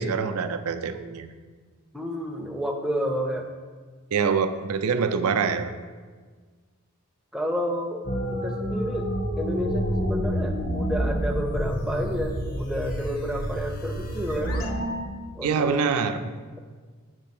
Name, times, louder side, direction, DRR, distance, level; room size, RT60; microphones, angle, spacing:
voice 1, 0.0-1.3 4.1-5.8 15.4-16.2, right 5 dB, 80° right, 10 dB, 0.4 m, -25 dB
voice 2, 1.9-3.5 7.3-8.0 8.3-9.1 9.4-14.6 15.3-15.9, equal, 5° right, 1 dB, 0.5 m, -30 dB
sound 1, 8.0-15.0, equal, 40° left, 0.8 m, -28 dB
7.3 x 3.4 x 5.9 m, 1.5 s
head